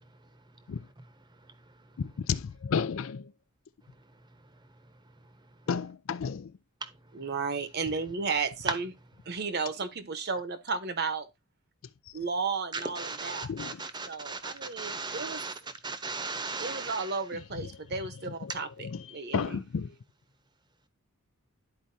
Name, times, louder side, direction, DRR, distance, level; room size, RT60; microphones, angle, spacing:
voice 1, 0.3-0.7 1.3-2.0 4.0-5.6 6.8-7.2 12.7-17.2, right 4 dB, 20° right, 0.8 m, -39 dB
voice 2, 2.0-3.3 5.7-6.6 12.1-12.2 13.4-13.8 17.3-20.0, left 6 dB, 65° left, 0.4 m, -34 dB
voice 3, 7.1-8.9 9.3-11.3 12.1-13.5 14.1-15.4 16.6-18.7 19.1-19.6, right 4 dB, 50° right, 0.9 m, -33 dB
12.0 x 4.5 x 2.6 m
head